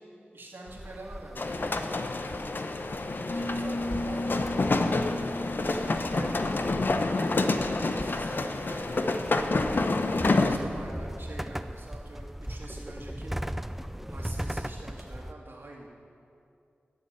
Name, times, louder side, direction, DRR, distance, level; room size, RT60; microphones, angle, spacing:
voice 1, 0.3-1.9 3.3-4.7 5.6-6.4 7.4-9.1 10.0-13.3 14.1-15.9, right 2 dB, 65° right, -2 dB, 2.3 m, -46 dB
sound 1, 0.7-15.3, equal, 5° right, 0.4 m, -39 dB
sound 2, 1.4-10.6, left 3 dB, 55° left, 0.7 m, -28 dB
sound 3, 3.3-8.8, left 1 dB, 85° left, 1.8 m, -37 dB
12.0 x 6.8 x 9.1 m, 2.5 s
wide cardioid pair, 80°, 4 cm